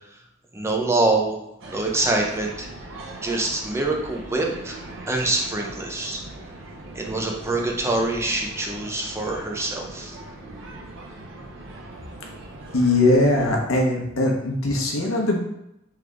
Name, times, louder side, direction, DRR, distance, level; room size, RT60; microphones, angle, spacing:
voice 1, 0.5-1.4 1.7-2.7 3.2-4.8 5.1-6.2 6.9-10.2, right 2 dB, 15° right, 0 dB, 0.5 m, -25 dB
sound 1, 1.6-13.6, right 2 dB, 65° right, 0.9 m, -40 dB
voice 2, 12.7-15.4, left 2 dB, 85° left, 0 dB, 0.9 m, -20 dB
3.7 x 3.4 x 3.3 m, 0.83 s
head